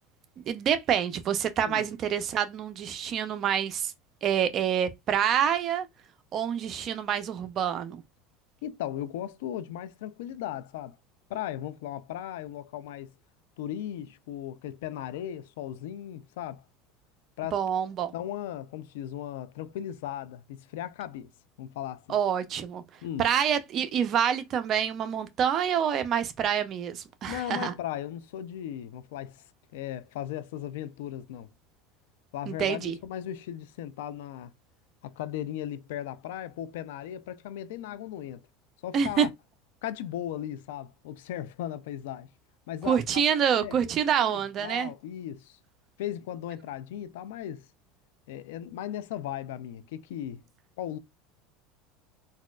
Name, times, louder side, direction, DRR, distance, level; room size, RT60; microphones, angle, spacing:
voice 1, 0.5-3.9 4.2-5.9 6.3-8.0 17.5-18.1 22.1-22.8 23.2-27.7 32.5-33.0 38.9-39.3 42.8-44.9, right 8 dB, 40° right, 0.5 m, -27 dB
voice 2, 8.6-11.0 11.3-13.1 13.6-16.6 17.4-17.6 18.1-21.3 21.6-22.2 23.0-23.3 27.3-29.5 29.7-31.5 32.3-34.5 35.0-38.5 38.8-39.3 39.8-42.3 42.7-43.0 43.5-43.9 44.2-45.6 46.0-47.7 48.3-50.4 50.8-51.0, left 11 dB, 85° left, 0.4 m, -37 dB
4.0 x 2.3 x 2.3 m
supercardioid pair, 120°, 0 cm